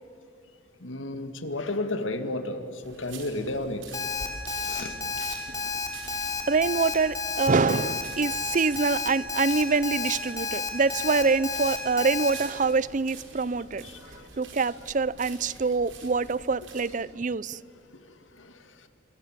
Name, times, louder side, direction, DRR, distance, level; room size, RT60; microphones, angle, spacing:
voice 1, 0.8-3.9 4.6-5.0 13.8-14.3 18.4-18.6, left 2 dB, 90° left, 2.2 m, -32 dB
sound 1, 2.8-17.0, right 3 dB, 85° right, 5.0 m, -46 dB
Alarm, 3.9-12.3, left 4 dB, 20° left, 3.1 m, -31 dB
voice 2, 6.5-13.8 14.4-17.6, right 4 dB, 40° right, 0.6 m, -25 dB
30.0 x 26.5 x 7.5 m
head